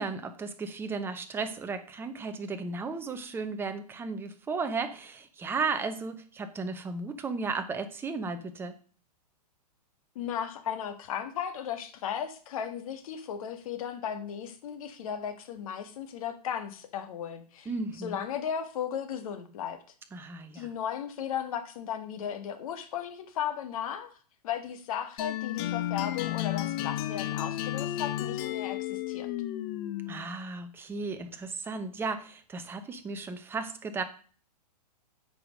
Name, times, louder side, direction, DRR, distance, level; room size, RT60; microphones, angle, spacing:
voice 1, 0.0-8.8 17.6-18.2 20.1-20.7 30.1-34.0, right 4 dB, 10° right, 8 dB, 0.8 m, -35 dB
voice 2, 10.1-17.7 18.0-19.8 20.5-24.1 24.4-29.3, left 9 dB, 55° left, 8 dB, 1.7 m, -35 dB
sound 1, 25.2-30.3, left 14 dB, 35° left, 0.6 m, -33 dB
8.5 x 5.0 x 6.4 m, 0.41 s
hypercardioid pair, 145°, 21 cm